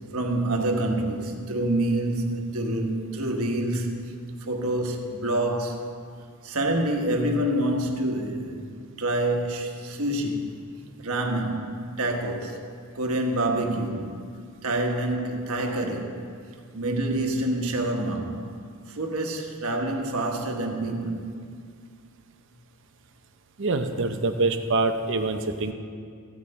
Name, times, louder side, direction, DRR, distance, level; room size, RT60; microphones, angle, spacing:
voice 1, 0.1-3.9 4.4-5.8 6.4-8.7 9.0-10.6 11.0-12.6 12.9-14.2 14.6-16.2 16.7-18.5 18.9-21.2, right 1 dB, 75° right, 1.3 m, -27 dB
voice 2, 23.6-25.7, right 3 dB, 55° right, 0.7 m, -25 dB
15.0 x 9.0 x 4.2 m
head